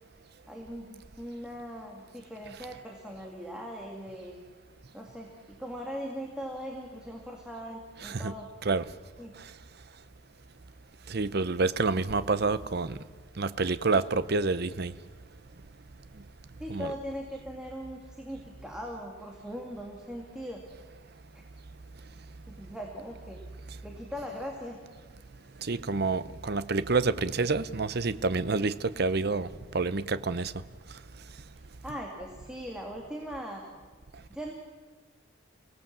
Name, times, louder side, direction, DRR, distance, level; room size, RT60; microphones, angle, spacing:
voice 1, 0.5-4.4 4.9-8.5 9.2-9.3 16.6-20.6 21.3-21.4 22.5-23.4 23.8-24.8 31.8-33.6 34.3-34.5, equal, 5° right, 2.3 m, -40 dB
voice 2, 8.0-8.3 8.6-8.9 9.4-9.5 11.1-13.0 13.4-14.9 16.7-16.9 23.7-23.8 25.6-30.5, right 3 dB, 50° right, 0.7 m, -28 dB
29.5 x 17.5 x 7.4 m
head